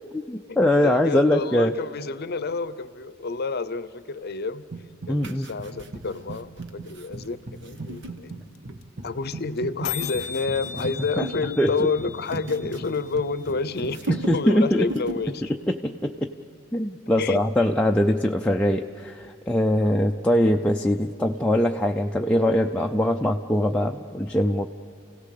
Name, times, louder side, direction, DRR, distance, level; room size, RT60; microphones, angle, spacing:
voice 1, 0.1-1.7 5.1-5.5 11.2-11.3 11.6-11.9 14.1-14.9 15.5-16.3 16.7-24.7, left 1 dB, 5° left, 1 dB, 0.5 m, -22 dB
voice 2, 0.8-4.7 5.1-8.4 9.0-15.4 17.2-17.4 19.8-20.0, left 4 dB, 50° left, 15 dB, 0.7 m, -29 dB
sound 1, 4.7-5.3 5.6-14.4, right 3 dB, 40° right, 1.4 m, -39 dB
sound 2, 5.2-9.1 9.7-11.5 11.8-13.5 13.8-14.6 14.8-15.3 15.7-15.9, right 1 dB, 60° right, 1.2 m, -40 dB
sound 3, 7.8-7.9 8.0-8.1 8.3-8.6 8.8-8.9 9.1-9.3 9.6-9.7 9.8-13.8, left 9 dB, 85° left, 0.6 m, -37 dB
29.0 x 17.0 x 6.7 m, 2.7 s
head